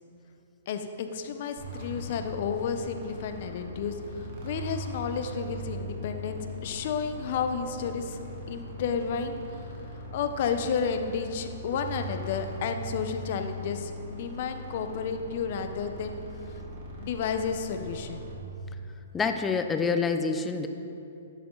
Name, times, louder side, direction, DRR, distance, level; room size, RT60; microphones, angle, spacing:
voice 1, 0.7-8.2 8.5-9.6 9.9-16.2 17.0-18.2, left 6 dB, 50° left, 7 dB, 1.0 m, -32 dB
sound 1, 1.6-18.3, equal, 45° right, 2.9 m, -40 dB
voice 2, 19.1-20.7, left 5 dB, 15° left, 7 dB, 0.7 m, -27 dB
13.0 x 11.0 x 4.1 m, 2.7 s
hypercardioid pair, 145°, 0 cm